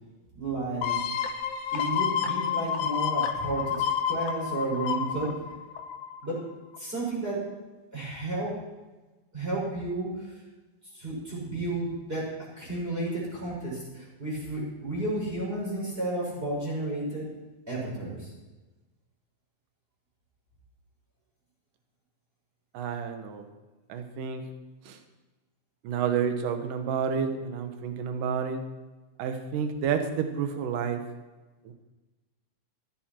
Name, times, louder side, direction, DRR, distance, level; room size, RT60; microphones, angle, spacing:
voice 1, 0.3-1.0 1.7-5.3 6.2-6.4 6.8-7.4 7.9-8.5 9.3-10.4 10.9-12.3 12.6-17.3 17.7-18.3, right 2 dB, 15° right, -5 dB, 6.1 m, -32 dB
sound 1, 0.8-6.3 6.7-6.8, left 8 dB, 80° left, 1.4 m, -29 dB
voice 2, 22.7-23.4 23.9-24.4 24.9-25.0 25.8-28.6 29.2-31.0 31.7-31.8, right 7 dB, 70° right, 7 dB, 2.6 m, -30 dB
15.0 x 12.0 x 4.5 m, 1.2 s
omnidirectional pair, 4.3 m